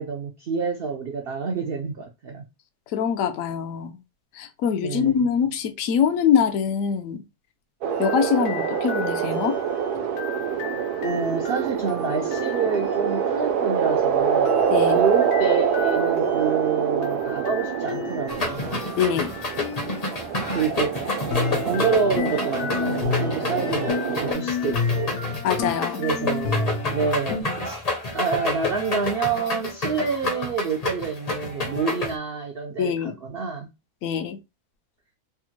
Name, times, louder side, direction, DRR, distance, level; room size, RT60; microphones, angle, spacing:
voice 1, 0.0-2.5 4.8-5.3 11.0-14.6 14.9-18.8 20.5-21.1 21.5-25.2 26.0-27.8 28.1-33.7, right 5 dB, 75° right, 0.5 m, -27 dB
voice 2, 2.9-3.9 4.3-7.2 8.0-9.6 14.7-15.0 18.9-19.3 25.4-26.0 32.8-33.1 34.0-34.4, left 7 dB, 70° left, 0.9 m, -23 dB
sound 1, 7.8-24.3, right 7 dB, 90° right, 1.2 m, -26 dB
sound 2, 7.9-13.2 14.4-20.2 21.3-27.4, left 5 dB, 90° left, 1.2 m, -32 dB
sound 3, 18.3-32.1, left 3 dB, 40° left, 0.6 m, -29 dB
3.4 x 2.1 x 2.9 m
omnidirectional pair, 1.6 m